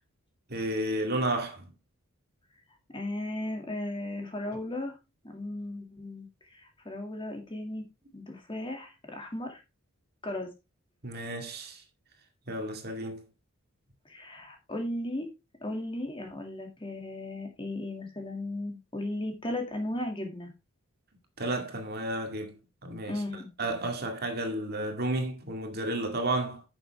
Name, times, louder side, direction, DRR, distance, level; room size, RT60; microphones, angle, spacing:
voice 1, 0.5-1.7 11.0-11.8 12.5-13.2 21.4-22.5 22.8-23.2 23.6-26.6, right 1 dB, 45° right, 2.0 m, -32 dB
voice 2, 2.9-5.0 5.2-7.9 8.1-9.6 10.2-10.5 14.1-15.3 15.6-20.5 23.1-23.5, left 1 dB, 25° left, 2.3 m, -36 dB
10.5 x 6.8 x 3.5 m
head